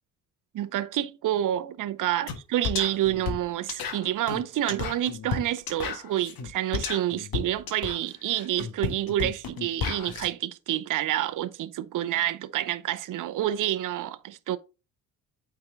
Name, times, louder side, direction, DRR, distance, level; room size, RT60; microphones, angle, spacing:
voice 1, 0.5-14.6, right 13 dB, 50° right, 0.7 m, -28 dB
sound 1, 2.3-2.4 2.6-10.3, left 6 dB, 55° left, 1.5 m, -33 dB
8.6 x 3.8 x 3.8 m
hypercardioid pair, 50°, 42 cm